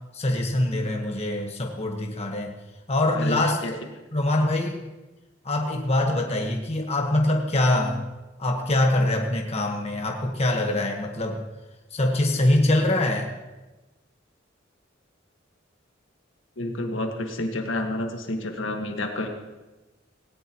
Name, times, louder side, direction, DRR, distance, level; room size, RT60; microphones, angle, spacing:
voice 1, 0.1-2.5 2.9-3.8 4.1-4.8 5.4-8.0 8.4-11.4 11.9-13.3, left 1 dB, 35° left, 1 dB, 1.4 m, -24 dB
voice 2, 3.1-3.7 16.6-19.3, left 1 dB, 70° left, 3 dB, 1.7 m, -29 dB
18.0 x 18.0 x 3.1 m, 1.1 s
head